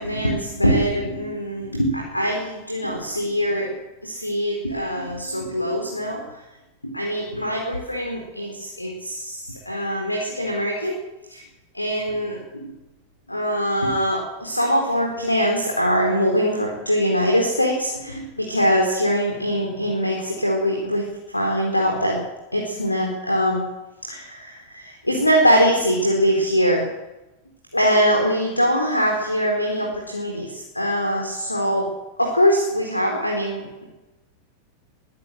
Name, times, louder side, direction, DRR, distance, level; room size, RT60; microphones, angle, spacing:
voice 1, 0.0-3.7 4.0-6.4 6.8-11.0 11.3-11.4 11.7-12.7 13.3-21.1 21.3-22.2 22.5-23.6 24.1-26.8 27.7-31.9 32.2-33.8, equal, 85° left, 1 dB, 4.2 m, -22 dB
23.5 x 16.5 x 7.8 m, 1.0 s
figure-of-eight pair, 90°, 0 cm